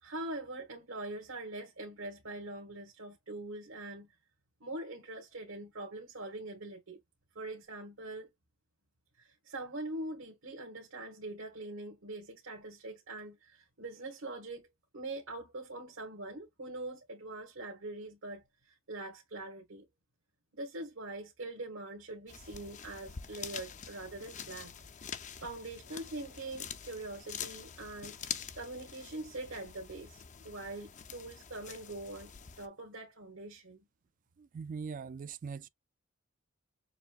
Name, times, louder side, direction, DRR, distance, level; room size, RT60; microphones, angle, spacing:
voice 1, 0.0-4.1 4.6-7.0 7.3-8.3 9.2-14.7 14.9-19.8 20.5-24.7 25.4-33.8, right 2 dB, 80° right, 1.6 m, -43 dB
sound 1, 22.3-32.7, left 7 dB, 40° left, 0.5 m, -46 dB
voice 2, 34.4-35.7, right 5 dB, 40° right, 0.3 m, -41 dB
6.9 x 2.7 x 2.3 m
head